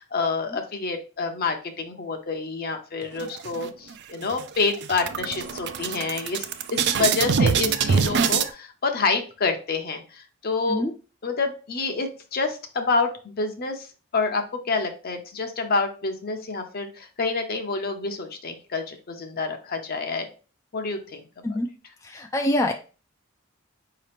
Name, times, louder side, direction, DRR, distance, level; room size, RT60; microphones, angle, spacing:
voice 1, 0.0-10.8 11.2-13.9 14.1-20.3 20.7-21.2, left 4 dB, 50° left, 5 dB, 0.6 m, -28 dB
sound 1, 3.2-3.9 4.3-4.4 4.7-8.5, right 6 dB, 55° right, 0.4 m, -24 dB
voice 2, 22.0-22.7, left 1 dB, 15° left, 3 dB, 0.3 m, -25 dB
4.9 x 2.8 x 3.3 m, 0.35 s
head